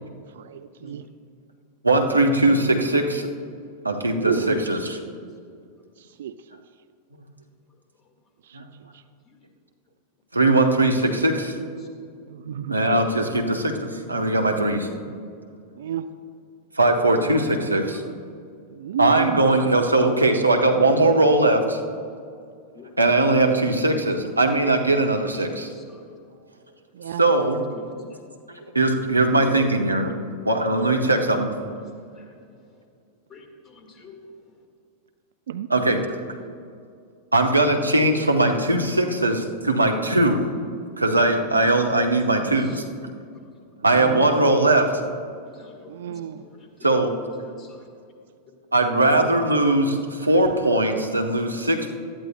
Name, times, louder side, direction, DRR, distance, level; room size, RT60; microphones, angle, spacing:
voice 1, 0.4-1.0 4.1-4.7 6.2-6.3 8.5-8.6 12.3-13.0 15.0-15.1 15.8-16.1 18.7-19.6 26.9-27.2 35.5-35.7 43.9-44.3 45.9-46.4, right 9 dB, 60° right, 12 dB, 0.3 m, -31 dB
voice 2, 1.8-3.3 3.8-5.0 8.5-8.6 10.3-11.5 12.7-14.9 16.8-18.0 19.0-21.8 23.0-25.7 27.2-27.6 28.5-30.1 30.4-31.7 35.7-36.1 37.3-40.4 41.0-42.7 43.8-45.0 46.8-47.1 48.7-52.0, right 2 dB, 85° right, 3 dB, 0.9 m, -20 dB
voice 3, 17.7-18.0 22.7-23.0 25.3-25.4 25.6-26.1 27.7-28.2 31.0-31.2 31.6-32.7 33.3-34.2 42.6-42.8 45.5-46.9 47.4-47.9, left 4 dB, 25° left, 3 dB, 1.7 m, -49 dB
18.0 x 12.5 x 2.2 m, 2.3 s
figure-of-eight pair, 90°, 0 cm